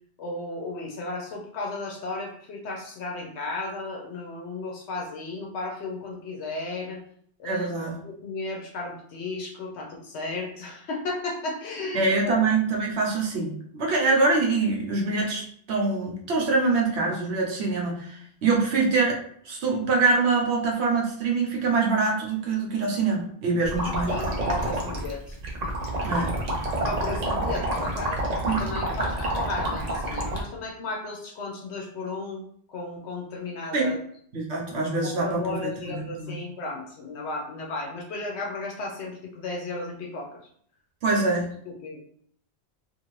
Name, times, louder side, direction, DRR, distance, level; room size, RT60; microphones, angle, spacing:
voice 1, 0.2-7.0 7.4-7.7 8.0-12.4 23.8-25.7 26.8-28.2 28.6-32.4 32.7-34.0 35.2-40.4 41.1-41.2 41.7-42.0, left 2 dB, 85° left, -1 dB, 0.9 m, -34 dB
voice 2, 7.4-8.0 11.9-15.4 15.7-19.2 19.4-24.1 26.0-26.3 28.5-28.6 33.7-34.0 34.3-36.3 41.0-41.5, right 3 dB, 75° right, -1 dB, 1.0 m, -24 dB
sound 1, 23.6-30.4, right 1 dB, 45° right, 0.6 m, -28 dB
2.6 x 2.5 x 3.0 m, 0.62 s
omnidirectional pair, 1.1 m